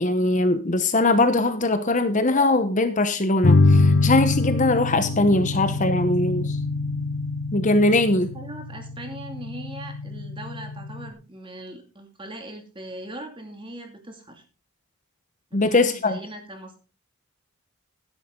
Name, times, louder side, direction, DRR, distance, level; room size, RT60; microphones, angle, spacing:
voice 1, 0.0-6.6 7.5-8.3 15.5-16.2, left 2 dB, 35° left, 9 dB, 0.9 m, -21 dB
sound 1, 3.4-11.1, left 3 dB, 70° left, 1.2 m, -24 dB
voice 2, 8.1-14.4 15.5-16.8, right 1 dB, 25° right, 4 dB, 2.5 m, -40 dB
12.5 x 10.5 x 3.8 m, 0.35 s
head